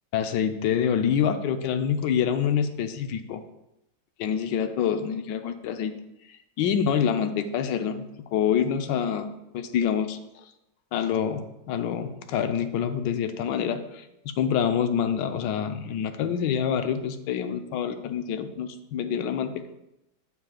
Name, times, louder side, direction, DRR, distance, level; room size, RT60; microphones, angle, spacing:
voice 1, 0.1-3.4 4.2-5.9 6.6-9.3 9.5-10.2 10.9-19.6, left 8 dB, 85° left, 8 dB, 1.3 m, -26 dB
8.5 x 6.9 x 2.4 m, 0.88 s
omnidirectional pair, 1.9 m